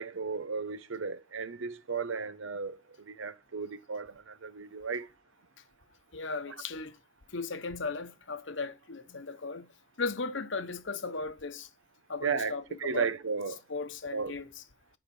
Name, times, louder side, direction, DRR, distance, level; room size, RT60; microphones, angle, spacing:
voice 1, 0.0-5.1 6.5-6.6 12.2-13.6 14.1-14.3, right 5 dB, 80° right, 0.8 m, -35 dB
voice 2, 6.1-6.9 7.3-9.7 10.0-11.7 12.1-13.1 13.7-14.5, left 4 dB, 65° left, 1.0 m, -36 dB
9.9 x 5.1 x 6.0 m
head